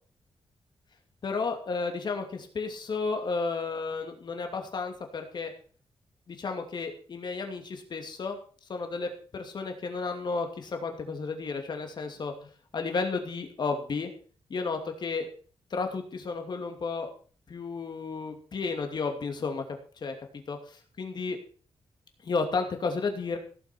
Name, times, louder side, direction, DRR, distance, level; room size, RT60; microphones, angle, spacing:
voice 1, 1.2-5.5 6.3-8.4 8.7-14.1 14.5-15.3 15.7-17.1 17.5-19.6 20.0-20.2 20.5-21.4 22.2-23.4, left 4 dB, 50° left, 4 dB, 2.7 m, -32 dB
16.5 x 7.6 x 6.0 m, 0.42 s
wide cardioid pair, 160°, 10 cm